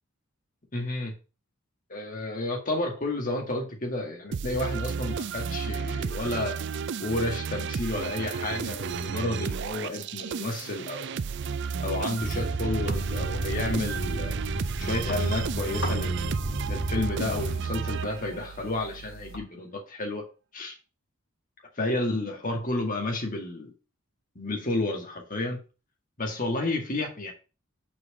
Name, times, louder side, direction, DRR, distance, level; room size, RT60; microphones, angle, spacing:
voice 1, 0.7-1.1 1.9-6.6 7.0-11.0 11.8-14.3 14.8-16.3 16.7-20.2 20.5-20.8 21.8-23.7 24.4-25.6 26.2-27.3, left 2 dB, 40° left, 2 dB, 2.0 m, -31 dB
sound 1, 4.3-18.6, right 6 dB, 55° right, 0.4 m, -32 dB
sound 2, 12.2-17.6, right 1 dB, 25° right, 1.5 m, -33 dB
sound 3, 12.7-19.4, right 1 dB, 65° left, 2.9 m, -41 dB
6.1 x 4.7 x 6.5 m, 0.33 s
head